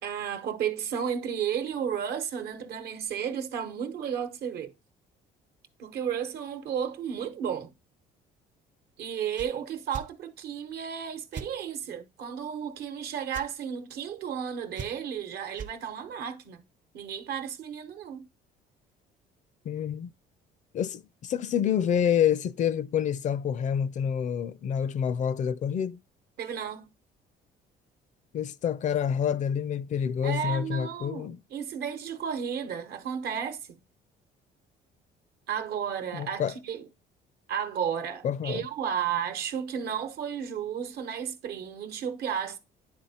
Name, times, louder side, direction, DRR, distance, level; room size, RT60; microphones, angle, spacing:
voice 1, 0.0-4.7 5.8-7.7 9.0-16.6 16.9-18.3 26.4-26.9 30.2-33.8 35.5-36.9 37.5-42.6, right 8 dB, 70° right, 1.1 m, -33 dB
sound 1, 9.3-9.5 9.9-10.1 11.3-11.5 13.3-13.5 14.7-15.2 15.5-15.7, right 6 dB, 50° right, 0.7 m, -39 dB
voice 2, 19.7-20.1 20.7-26.0 28.3-31.4 36.1-36.5 38.2-38.7, left 8 dB, 45° left, 0.4 m, -28 dB
9.6 x 3.7 x 4.2 m
cardioid pair, 110°, 17 cm